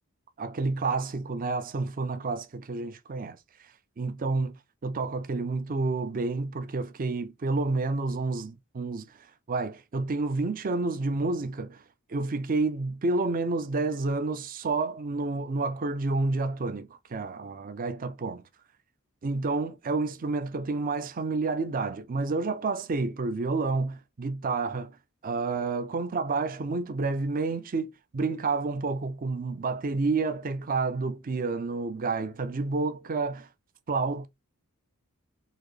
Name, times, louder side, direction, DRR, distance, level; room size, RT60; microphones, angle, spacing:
voice 1, 0.4-3.4 4.0-4.6 4.8-11.8 12.1-18.5 19.2-25.0 25.2-33.5 33.9-34.3, right 3 dB, 40° right, 0.5 m, -29 dB
4.1 x 2.7 x 3.2 m
head